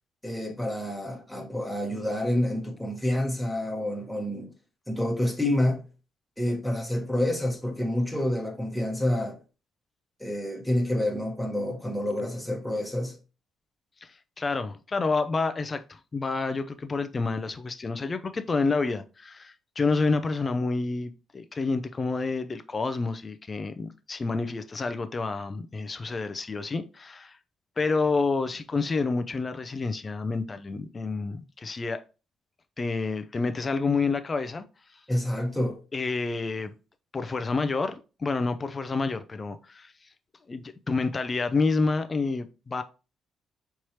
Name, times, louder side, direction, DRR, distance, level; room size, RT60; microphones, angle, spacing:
voice 1, 0.2-4.5 4.9-5.8 6.4-9.4 10.2-13.2 35.1-35.8, left 1 dB, 5° left, 1.1 m, -28 dB
voice 2, 14.4-27.4 27.8-32.0 32.8-34.6 35.9-36.7 37.1-39.9 40.5-42.8, left 4 dB, 30° left, 0.5 m, -29 dB
4.6 x 3.1 x 2.8 m
cardioid pair, 90°, 0 cm